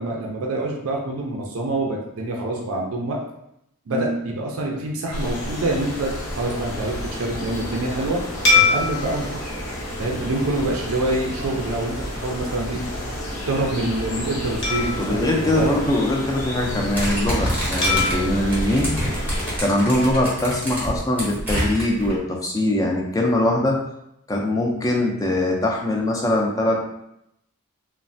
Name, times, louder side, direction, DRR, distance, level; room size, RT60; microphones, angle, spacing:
voice 1, 0.0-3.2 3.9-8.2 8.5-9.3 10.0-12.8 13.5-15.8, right 2 dB, 70° right, 0 dB, 0.4 m, -26 dB
sound 1, 5.1-19.6, left 1 dB, 90° left, 0.8 m, -31 dB
sound 2, 8.4-11.1 11.7-11.9 14.6-16.4 17.8-20.1, left 4 dB, 55° left, 0.7 m, -26 dB
voice 2, 15.0-18.9 19.6-23.8 24.3-26.8, left 1 dB, 15° left, 0 dB, 0.3 m, -22 dB
sound 3, 17.0-22.1, equal, 10° right, 0.7 m, -27 dB
3.0 x 2.1 x 2.6 m, 0.80 s
head